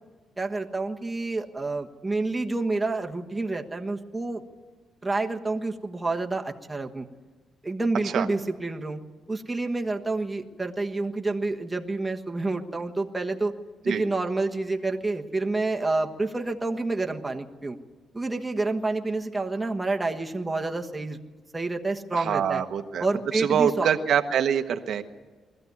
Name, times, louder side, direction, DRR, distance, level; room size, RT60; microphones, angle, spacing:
voice 1, 0.4-4.4 5.0-7.1 7.6-9.0 9.3-13.5 13.8-17.8 18.1-21.2 21.5-22.6 23.0-23.9, right 3 dB, 10° right, 2 dB, 1.4 m, -28 dB
voice 2, 22.1-23.1 23.3-25.0, right 8 dB, 65° right, 7 dB, 1.0 m, -25 dB
21.5 x 14.5 x 9.6 m, 1.4 s
cardioid pair, 135°, 0 cm